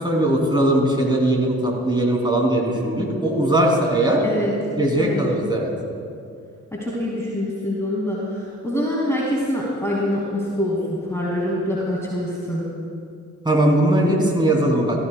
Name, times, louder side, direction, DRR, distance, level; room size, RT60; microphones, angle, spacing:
voice 1, 0.0-4.2 4.8-5.7 13.4-15.0, right 1 dB, 10° right, -2 dB, 3.0 m, -19 dB
voice 2, 6.7-12.6, left 1 dB, 5° left, -5 dB, 2.3 m, -25 dB
16.0 x 14.0 x 2.3 m, 2.4 s
figure-of-eight pair, 45°, 40 cm